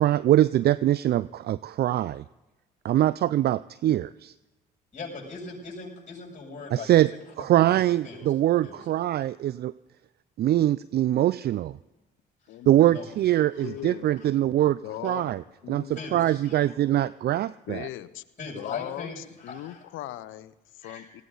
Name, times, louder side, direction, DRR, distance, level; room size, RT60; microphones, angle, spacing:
voice 1, 0.0-2.2 2.8-4.3 6.7-7.1 7.4-9.7 10.4-11.8 12.7-15.4 15.7-15.8 16.1-17.9, right 13 dB, 50° right, 18 dB, 0.4 m, -23 dB
voice 2, 4.9-7.2 7.7-8.2 8.6-8.9 12.4-12.6 12.9-13.1 13.5-13.7 15.0-15.2 15.9-16.8 18.4-19.8 20.8-21.1, left 4 dB, 35° left, -3 dB, 7.5 m, -40 dB
voice 3, 13.6-14.1 14.8-15.3 15.6-16.0 17.7-18.2 18.5-21.2, left 14 dB, 75° left, 15 dB, 0.8 m, -39 dB
19.0 x 16.0 x 4.0 m, 1.0 s
supercardioid pair, 60°, 21 cm